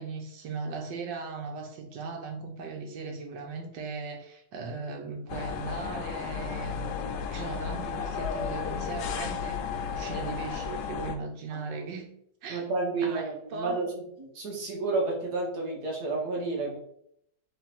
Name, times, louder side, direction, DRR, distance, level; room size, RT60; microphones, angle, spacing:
voice 1, 0.0-6.9 7.3-9.6 9.9-12.1 12.4-12.7 13.0-13.8, right 4 dB, 85° right, 3 dB, 1.6 m, -38 dB
sound 1, 5.3-11.2, left 6 dB, 85° left, 1.3 m, -33 dB
voice 2, 11.5-11.8 12.5-13.9 14.2-16.8, right 3 dB, 65° right, -1 dB, 1.7 m, -31 dB
3.7 x 3.3 x 4.4 m, 0.72 s
omnidirectional pair, 1.9 m